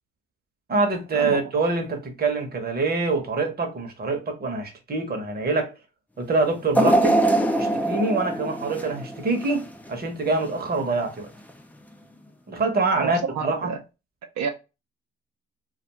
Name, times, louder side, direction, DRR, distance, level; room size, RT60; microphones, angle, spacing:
voice 1, 0.7-5.7 6.2-7.2 7.6-11.3 12.5-13.7, right 3 dB, 30° right, 0.8 m, -25 dB
sound 1, 6.7-9.9 10.3-10.5 11.5-11.6, right 1 dB, 5° left, 0.3 m, -22 dB
voice 2, 12.9-13.8 14.4-14.5, right 6 dB, 70° right, 0.6 m, -29 dB
2.4 x 2.3 x 2.8 m
cardioid pair, 90°, 30 cm